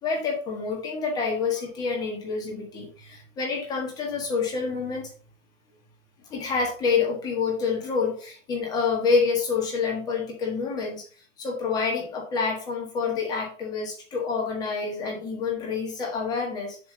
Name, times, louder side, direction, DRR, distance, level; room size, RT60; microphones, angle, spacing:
voice 1, 0.0-5.1 6.3-11.1 11.4-16.8, left 5 dB, 10° left, 0 dB, 1.4 m, -27 dB
7.3 x 3.5 x 6.4 m, 0.41 s
hypercardioid pair, 160°, 37 cm